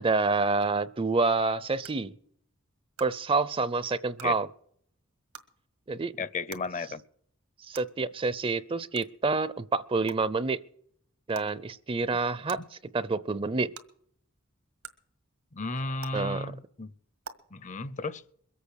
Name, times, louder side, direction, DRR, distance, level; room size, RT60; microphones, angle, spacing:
voice 1, 0.0-2.1 3.0-4.5 5.9-6.1 7.7-10.6 11.3-13.7 16.1-16.5, right 3 dB, 25° right, 0.5 m, -28 dB
sound 1, 0.6-0.7 1.8-1.9 2.9-3.0 4.1-4.3 5.3-5.4 6.5-6.6 7.7-7.8 8.9-9.1 10.1-10.2 11.3-11.5 12.5-12.6 13.7-13.8 14.8-14.9 16.0-16.1 17.2-17.3, right 6 dB, 90° right, 1.7 m, -42 dB
voice 2, 6.2-7.0 12.5-12.6 15.5-16.9 17.5-18.2, left 3 dB, 35° left, 0.6 m, -34 dB
22.5 x 8.4 x 6.5 m
head